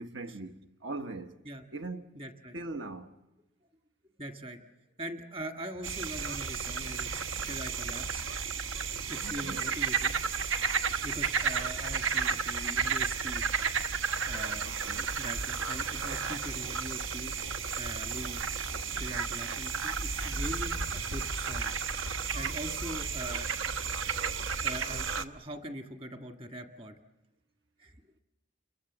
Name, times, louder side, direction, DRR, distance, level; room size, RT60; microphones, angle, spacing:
voice 1, 0.0-1.4 1.7-2.2 2.5-3.1 9.2-9.7 14.6-15.2, right 2 dB, 70° right, 1.2 m, -41 dB
voice 2, 2.1-2.6 4.2-4.7 5.0-8.3 9.1-10.1 11.0-13.4 14.3-14.7 15.2-17.3 17.8-18.4 18.8-23.5 24.6-27.0 27.8-28.0, equal, 30° right, 1.7 m, -42 dB
sound 1, 5.8-25.2, right 5 dB, 85° right, 1.1 m, -32 dB
29.0 x 22.5 x 7.3 m
head